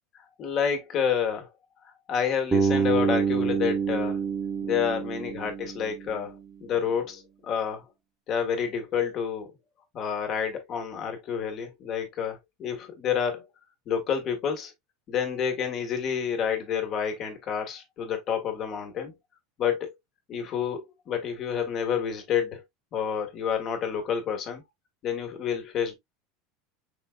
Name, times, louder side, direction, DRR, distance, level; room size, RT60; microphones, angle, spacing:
voice 1, 0.1-1.5 2.1-4.2 4.6-7.9 8.3-9.5 9.9-13.4 13.8-14.7 15.1-19.1 19.6-19.9 20.3-22.6 22.9-24.6 25.0-26.0, left 7 dB, 35° left, 1.6 m, -29 dB
Bass guitar, 2.5-6.5, right 5 dB, 15° right, 1.1 m, -27 dB
5.7 x 3.7 x 2.3 m
supercardioid pair, 150°, 0 cm